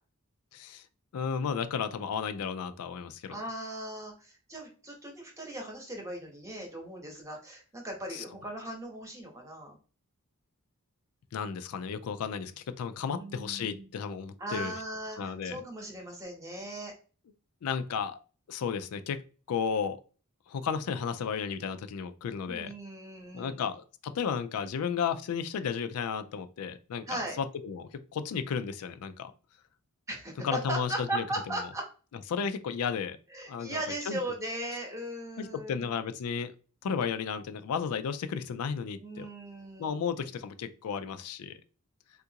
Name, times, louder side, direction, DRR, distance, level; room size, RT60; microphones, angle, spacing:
voice 1, 0.5-0.8 1.1-3.4 8.1-8.2 11.3-14.8 15.2-15.6 17.6-18.2 18.5-19.2 19.5-20.0 20.5-22.7 23.3-29.3 30.4-31.5 32.3-33.2 33.5-33.8 34.1-34.2 35.4-36.5 36.8-39.3 39.8-41.6, left 6 dB, 85° left, 10 dB, 0.4 m, -33 dB
voice 2, 3.3-9.8 13.1-13.9 14.4-16.9 22.5-23.6 27.1-27.4 30.1-31.8 33.3-35.9 39.0-40.1, right 1 dB, 15° right, 1 dB, 0.9 m, -38 dB
3.6 x 2.4 x 2.8 m, 0.37 s
head